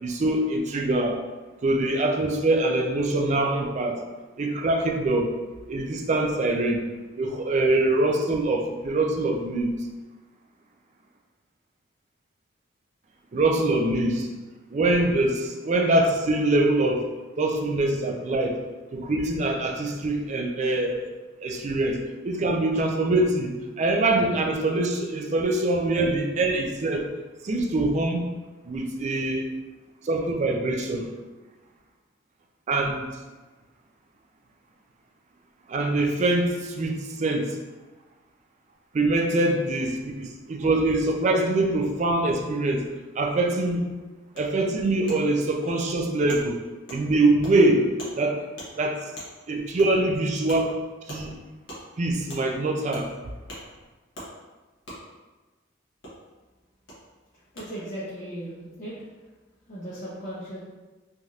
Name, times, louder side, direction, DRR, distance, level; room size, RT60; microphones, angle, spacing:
voice 1, 0.0-1.2 1.6-4.0 4.4-5.3 5.7-6.9 7.2-9.7 13.3-14.3 14.7-17.1 17.4-18.6 18.9-21.1 21.4-23.5 23.8-27.1 27.4-28.3 28.6-29.5 30.0-31.1 32.7-33.1 35.7-37.6 38.9-42.9 43.2-43.9 44.4-46.6 46.9-47.8 48.1-48.5 48.8-49.0 49.5-50.7 51.1-51.3 52.0-53.1, right 2 dB, 35° right, 2 dB, 0.3 m, -24 dB
Wood, 44.4-44.5 45.1-45.2 45.7-45.8 46.3-46.4 46.9-47.0 47.4-47.5 48.0-48.1 48.6-48.7 49.2-49.3 49.8-49.9 50.5-50.6 51.1-51.2 51.7-51.8 52.3-52.4 52.9-53.1 53.5-53.6 54.1-54.3 54.9-55.0 56.0-56.1 56.9-57.0 57.6-57.7, equal, 70° left, 1.0 m, -39 dB
voice 2, 57.5-59.0 59.7-60.6, right 1 dB, 45° left, -10 dB, 0.6 m, -36 dB
3.3 x 2.7 x 2.3 m, 1.2 s
head